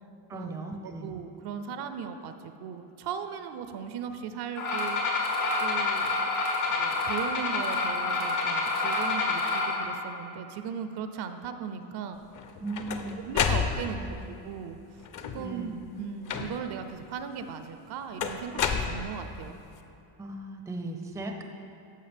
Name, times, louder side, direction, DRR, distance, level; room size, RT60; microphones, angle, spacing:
voice 1, 0.3-1.1 12.6-13.3 13.8-14.2 15.4-15.8 20.2-21.4, right 2 dB, 5° right, 4 dB, 0.5 m, -37 dB
voice 2, 0.8-5.3 5.6-6.2 6.7-12.2 13.2-14.0 14.4-14.8 15.3-19.6, right 7 dB, 55° right, 9 dB, 0.6 m, -38 dB
sound 1, 4.6-9.7, left 3 dB, 85° left, 1.9 m, -28 dB
sound 2, 12.3-14.2 15.0-15.6 16.3-16.8 18.2-19.5, left 6 dB, 40° left, 0.6 m, -30 dB
13.0 x 5.0 x 3.4 m, 2.7 s
supercardioid pair, 95°, 48 cm